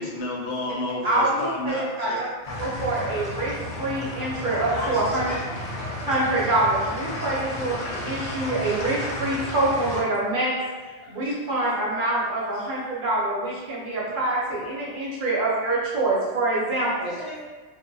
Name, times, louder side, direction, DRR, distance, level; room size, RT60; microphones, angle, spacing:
voice 1, 0.0-2.2, left 2 dB, 90° left, -1 dB, 0.9 m, -30 dB
voice 2, 1.0-2.3 2.6-3.5 3.8-5.4 6.1-10.6 10.8-17.2, right 2 dB, 55° right, -6 dB, 0.7 m, -25 dB
sound 1, 2.4-10.0, left 1 dB, 45° left, 0.5 m, -33 dB
voice 3, 4.7-6.7 7.8-7.9 8.3-8.5 11.0-11.1 11.4-11.5 17.0-17.4, left 1 dB, 40° right, -9 dB, 0.3 m, -38 dB
2.2 x 2.2 x 2.5 m, 1.4 s
omnidirectional pair, 1.1 m